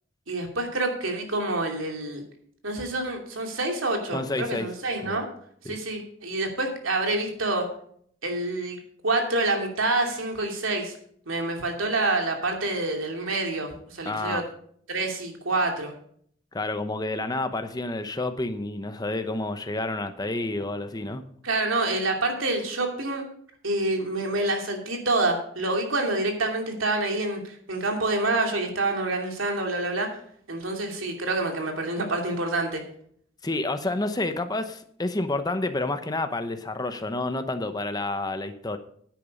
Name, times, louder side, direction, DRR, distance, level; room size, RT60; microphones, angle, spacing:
voice 1, 0.3-2.2 2.6-5.3 5.6-7.7 8.2-8.8 9.0-11.0 11.3-14.4 14.9-15.9 21.4-23.2 23.6-30.1 30.5-32.8, right 2 dB, 80° right, 3 dB, 2.7 m, -27 dB
voice 2, 4.1-4.7 5.0-5.2 5.6-5.8 14.1-14.5 16.5-21.3 33.4-38.8, left 2 dB, 20° left, 9 dB, 0.9 m, -29 dB
10.0 x 9.0 x 5.3 m, 0.63 s
head